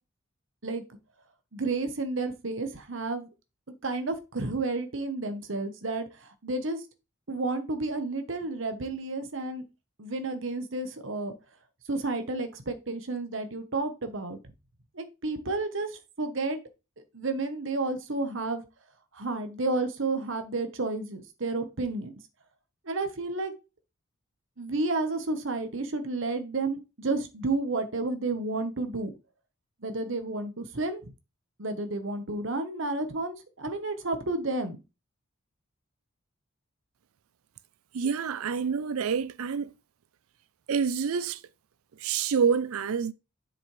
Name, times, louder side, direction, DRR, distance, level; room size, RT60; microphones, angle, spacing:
voice 1, 1.5-3.3 3.8-6.1 6.4-6.8 7.3-9.6 10.0-11.3 11.9-14.4 15.0-15.9 16.2-16.6 17.1-18.6 19.2-22.1 22.9-23.5 24.6-29.1 29.8-31.0 31.6-34.8, right 3 dB, 60° right, 1.1 m, -31 dB
voice 2, 37.9-39.7 40.7-41.4 42.0-43.1, right 6 dB, 85° right, 0.5 m, -27 dB
7.6 x 6.2 x 3.2 m
head